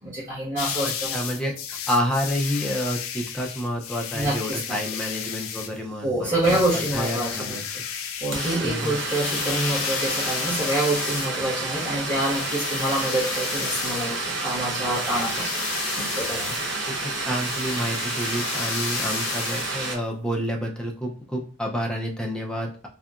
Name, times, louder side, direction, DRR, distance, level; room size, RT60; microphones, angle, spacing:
voice 1, 0.0-1.2 4.1-4.4 4.7-4.8 6.0-7.6 8.2-15.5 16.0-16.5, right 1 dB, 35° right, -11 dB, 1.3 m, -26 dB
sound 1, 0.6-5.8 6.4-11.4 12.2-14.2 14.9-16.7 17.3-19.7, left 8 dB, 85° left, 0.3 m, -33 dB
voice 2, 0.8-6.6 6.9-7.8 8.6-9.0 16.9-22.9, equal, 5° left, 0 dB, 0.3 m, -29 dB
sound 2, 6.2-6.3 6.5-20.0, right 2 dB, 60° right, 0.6 m, -30 dB
2.7 x 2.3 x 2.3 m, 0.39 s
head